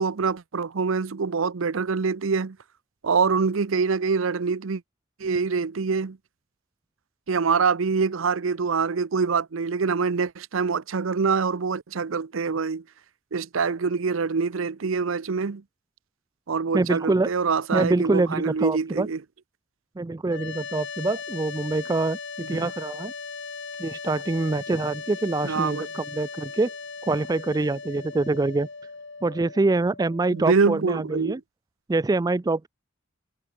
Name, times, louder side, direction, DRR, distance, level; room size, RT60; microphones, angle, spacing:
voice 1, 0.0-2.6 3.0-4.8 5.2-6.2 7.3-12.8 13.3-15.6 16.5-19.2 22.5-22.7 25.4-25.9 30.3-31.4, right 5 dB, 75° right, 0.6 m, -25 dB
voice 2, 16.7-17.3 17.7-19.1 20.0-23.1 23.8-26.7 27.0-28.7 29.2-31.4 31.9-32.7, right 3 dB, 20° right, 0.4 m, -25 dB
sound 1, 20.3-31.4, left 5 dB, 65° left, 3.2 m, -38 dB
head